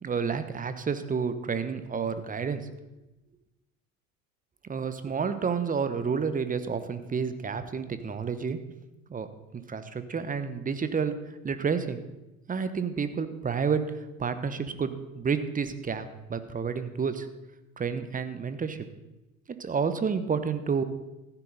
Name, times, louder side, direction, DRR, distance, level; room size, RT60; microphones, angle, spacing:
voice 1, 0.0-2.7 4.6-8.6 9.1-9.3 9.5-12.0 12.5-17.3 17.8-18.9 19.6-20.8, right 6 dB, 20° right, 11 dB, 1.1 m, -30 dB
14.5 x 10.0 x 4.1 m, 1.0 s
hypercardioid pair, 75°, 41 cm